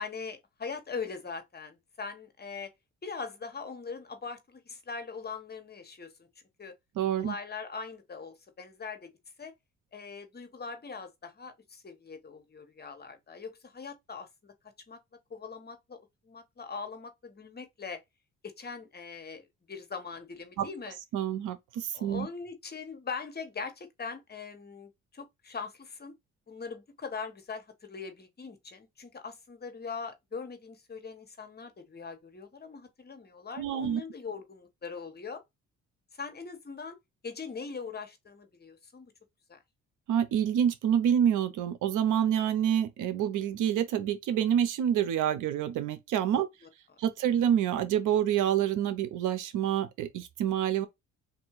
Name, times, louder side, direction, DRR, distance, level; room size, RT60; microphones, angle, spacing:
voice 1, 0.0-2.7 3.0-6.3 6.6-6.7 7.2-9.1 9.4-9.5 9.9-14.5 14.9-15.0 15.3-18.0 18.4-21.0 21.9-26.1 26.5-35.4 36.1-37.0 37.2-39.1 39.5-39.6 46.3-46.4 46.9-47.0, left 5 dB, 30° left, 1.2 m, -41 dB
voice 2, 7.0-7.4 20.6-20.7 21.1-22.3 33.6-34.0 40.1-46.5 47.0-50.9, right 9 dB, 90° right, 0.8 m, -27 dB
3.7 x 2.6 x 4.7 m
cardioid pair, 90°, 30 cm